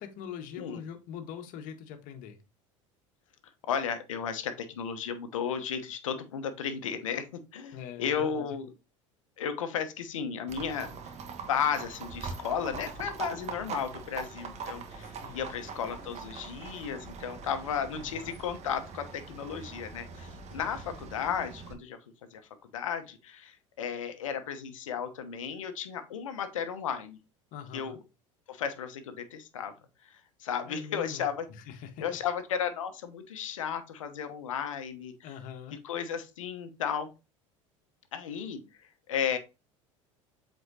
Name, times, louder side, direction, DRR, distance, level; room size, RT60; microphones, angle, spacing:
voice 1, 0.0-2.4 7.7-8.6 15.0-15.5 18.0-18.4 20.6-20.8 27.5-28.0 30.7-32.2 35.2-35.8, left 8 dB, 55° left, 6 dB, 1.4 m, -43 dB
voice 2, 3.7-7.3 7.5-8.7 9.4-11.0 11.5-22.0 22.3-22.4 22.7-27.2 27.7-27.9 28.5-29.7 30.0-31.4 32.0-35.3 35.8-37.1 38.1-38.6 39.1-39.4, left 7 dB, 75° left, 9 dB, 1.0 m, -34 dB
Livestock farm animals working animals, 10.5-21.7, right 5 dB, 40° right, 1.4 m, -42 dB
7.8 x 4.4 x 2.8 m, 0.28 s
hypercardioid pair, 75°, 17 cm